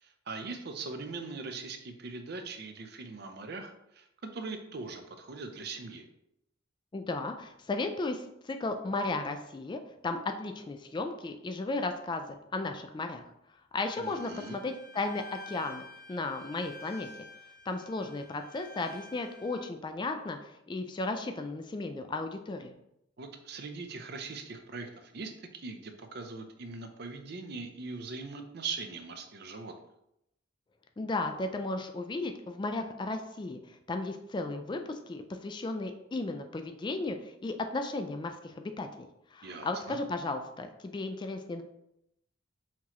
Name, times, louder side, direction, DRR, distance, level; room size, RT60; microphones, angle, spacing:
voice 1, 0.0-6.1 14.0-14.6 23.2-29.7 39.4-40.0, right 4 dB, 55° right, 7 dB, 0.6 m, -41 dB
voice 2, 6.9-13.2 13.7-15.8 16.1-17.1 17.7-22.8 31.0-41.6, left 2 dB, 25° left, 6 dB, 0.3 m, -35 dB
Bowed string instrument, 13.8-19.7, left 3 dB, 65° left, 1.0 m, -50 dB
5.7 x 2.9 x 3.0 m, 0.81 s
head